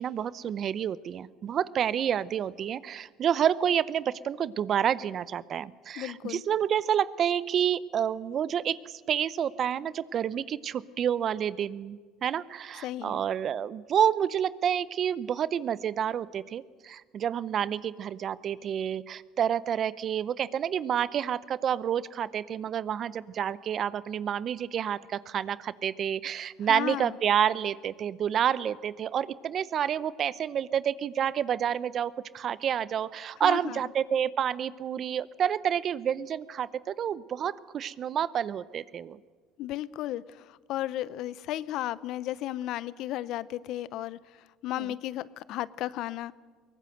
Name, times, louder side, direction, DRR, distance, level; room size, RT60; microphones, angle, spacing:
voice 1, 0.0-39.2 44.8-44.9, right 9 dB, 50° right, 18 dB, 0.8 m, -29 dB
voice 2, 6.0-6.4 12.8-13.2 26.7-27.2 33.4-33.8 39.6-40.2 40.5-44.2 44.6-46.3, left 14 dB, 65° left, 19 dB, 0.7 m, -34 dB
22.0 x 19.0 x 8.0 m, 1.5 s
supercardioid pair, 80°, 0 cm